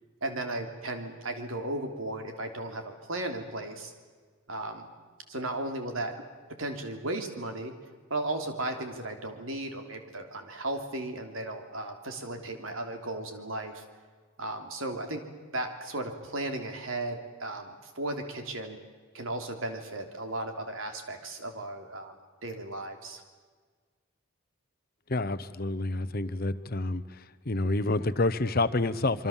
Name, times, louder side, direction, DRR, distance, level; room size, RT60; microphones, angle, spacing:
voice 1, 0.2-3.9 4.5-4.8 5.3-6.1 6.6-7.7 8.1-13.8 14.4-15.2 15.5-18.8 19.1-22.1 22.4-23.2, right 2 dB, 75° right, 5 dB, 3.3 m, -35 dB
voice 2, 25.1-27.0 27.5-29.3, left 2 dB, 45° left, 13 dB, 0.9 m, -28 dB
26.0 x 24.0 x 7.4 m, 1.5 s
head